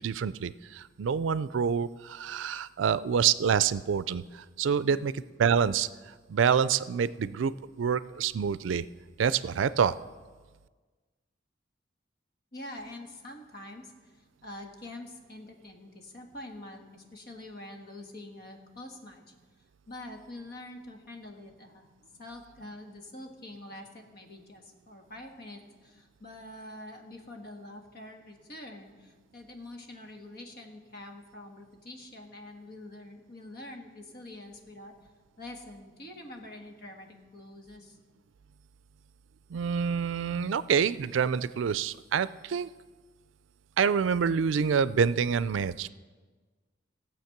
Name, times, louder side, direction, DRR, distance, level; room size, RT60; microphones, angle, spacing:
voice 1, 0.0-4.2 4.6-5.9 6.3-7.5 7.8-8.8 9.2-10.0 39.5-42.7 43.8-45.9, right 7 dB, 85° right, 17 dB, 0.4 m, -27 dB
voice 2, 4.8-5.1 12.5-19.2 19.9-21.9 22.2-35.0 35.4-38.0, left 1 dB, 55° left, 3 dB, 1.5 m, -46 dB
16.5 x 7.2 x 5.9 m, 1.4 s
head